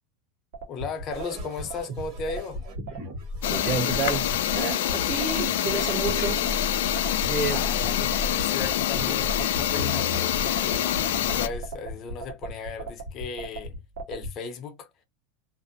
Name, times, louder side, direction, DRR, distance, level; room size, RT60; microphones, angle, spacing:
sound 1, 0.5-14.3, right 1 dB, 75° right, 1.2 m, -36 dB
voice 1, 0.7-2.6 7.5-13.8 14.1-14.9, left 5 dB, 35° left, 0.7 m, -36 dB
sound 2, 1.1-11.7, left 1 dB, 45° right, 1.1 m, -36 dB
sound 3, 3.4-11.5, left 12 dB, 75° left, 0.3 m, -26 dB
voice 2, 3.5-6.5 7.3-7.7 9.0-9.2, right 6 dB, 30° right, 0.5 m, -30 dB
2.6 x 2.0 x 2.6 m
supercardioid pair, 140°, 0 cm